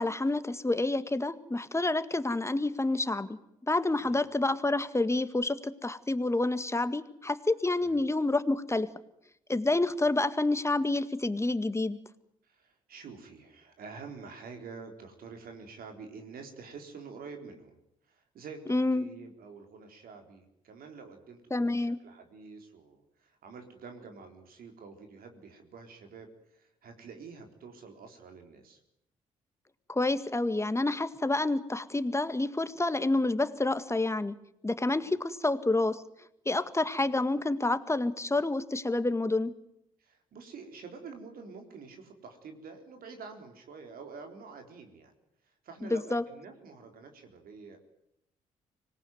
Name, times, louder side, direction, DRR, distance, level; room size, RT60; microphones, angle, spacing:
voice 1, 0.0-3.4 3.6-8.9 9.5-12.0 18.7-19.1 21.5-22.0 29.9-34.3 34.6-36.0 36.5-39.5 45.9-46.2, left 2 dB, 15° left, 12 dB, 1.9 m, -28 dB
voice 2, 12.5-17.8 18.1-28.8 35.0-35.1 40.0-45.1 45.4-47.8, right 5 dB, 60° right, 4 dB, 4.0 m, -48 dB
25.5 x 19.0 x 9.4 m, 0.81 s
hypercardioid pair, 45°, 17 cm